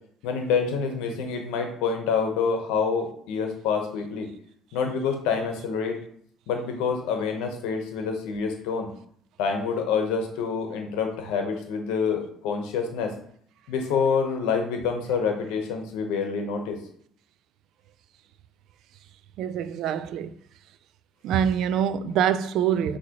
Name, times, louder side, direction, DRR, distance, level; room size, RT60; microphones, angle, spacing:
voice 1, 0.2-4.3 4.7-6.0 6.5-8.9 9.4-13.1 13.7-16.8, left 5 dB, 90° left, 0.9 m, -27 dB
voice 2, 19.4-20.3 21.2-23.0, right 9 dB, 70° right, 0.3 m, -25 dB
6.0 x 2.8 x 2.9 m
cardioid pair, 100°, 0 cm